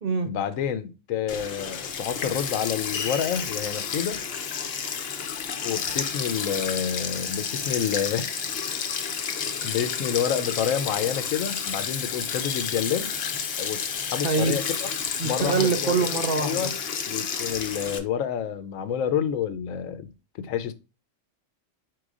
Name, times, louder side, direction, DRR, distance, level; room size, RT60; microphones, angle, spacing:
voice 1, 0.2-4.2 5.6-8.4 9.6-13.1 13.6-13.9 14.1-14.6 15.2-16.0 16.4-16.7 17.1-20.1 20.4-20.7, left 8 dB, 85° left, 1.0 m, -28 dB
Sink (filling or washing), 1.3-18.0, left 6 dB, 60° left, 0.8 m, -31 dB
voice 2, 15.2-16.7, right 4 dB, 50° right, 0.9 m, -24 dB
4.7 x 4.7 x 2.4 m
omnidirectional pair, 1.3 m